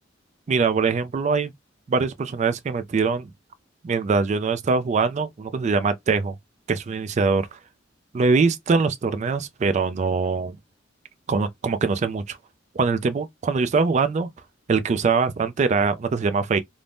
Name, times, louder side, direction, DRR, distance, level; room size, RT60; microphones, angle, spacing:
voice 1, 0.5-1.5 1.9-3.3 3.8-6.3 6.7-7.6 8.1-10.6 11.3-12.4 12.7-14.3 14.7-16.6, right 4 dB, 40° right, 0.3 m, -23 dB
2.6 x 2.0 x 3.2 m
head